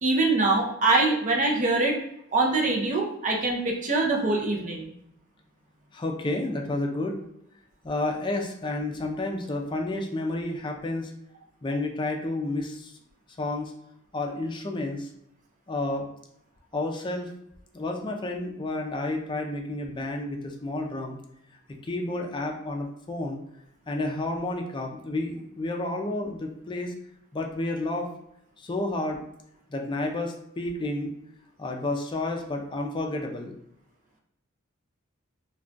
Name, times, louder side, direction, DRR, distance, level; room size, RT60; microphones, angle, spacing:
voice 1, 0.0-2.0 2.3-4.9, right 2 dB, 40° right, 0 dB, 0.5 m, -24 dB
voice 2, 5.9-7.2 7.8-11.1 11.6-12.9 13.4-13.7 14.1-15.1 15.7-16.1 16.7-17.3 17.7-21.2 21.8-23.4 23.9-26.9 27.3-28.1 28.6-29.2 29.7-31.1 31.6-33.5, left 2 dB, 25° left, 2 dB, 0.4 m, -30 dB
2.3 x 2.2 x 3.7 m, 0.76 s
head